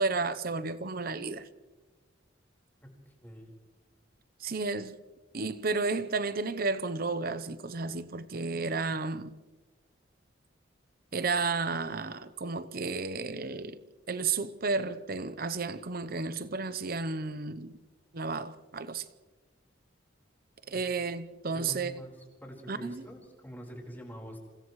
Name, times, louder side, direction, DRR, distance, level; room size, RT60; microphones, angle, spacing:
voice 1, 0.0-1.5 4.4-4.9 5.3-9.4 11.1-13.8 14.1-17.8 18.1-19.1 20.7-22.0 22.7-23.0, right 4 dB, 50° right, 0.8 m, -32 dB
voice 2, 2.8-3.6 20.7-20.8 21.5-22.1 22.4-24.4, equal, 10° left, 4.5 m, -45 dB
29.0 x 28.0 x 3.2 m
head